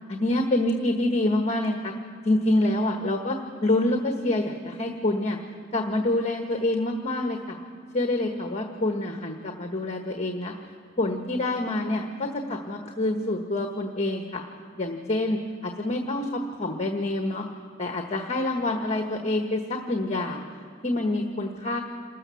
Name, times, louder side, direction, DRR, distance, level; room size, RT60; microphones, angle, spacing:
voice 1, 0.1-1.9 2.2-3.4 3.6-5.4 5.7-7.6 7.9-10.5 11.0-14.4 14.8-17.4 17.8-20.4 20.8-21.8, left 1 dB, 35° left, 3 dB, 1.2 m, -26 dB
28.0 x 14.0 x 7.0 m, 2.3 s
head